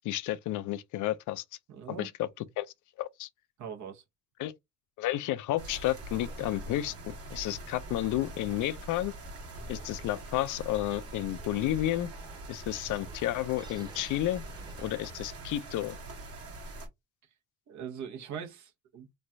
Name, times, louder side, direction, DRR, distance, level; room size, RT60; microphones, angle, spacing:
voice 1, 0.0-1.4 2.0-2.3 2.6-2.7 3.0-3.3 4.4-4.5 5.0-9.1 9.7-12.1 12.5-14.4 14.8-16.0, left 14 dB, 80° left, 0.4 m, -31 dB
voice 2, 1.7-2.1 3.6-4.0 17.7-19.2, right 7 dB, 70° right, 0.9 m, -41 dB
sound 1, 5.6-16.9, right 2 dB, 50° right, 1.2 m, -44 dB
sound 2, 6.2-15.6, right 1 dB, 15° right, 0.8 m, -51 dB
3.1 x 2.3 x 2.5 m
cardioid pair, 90°, 30 cm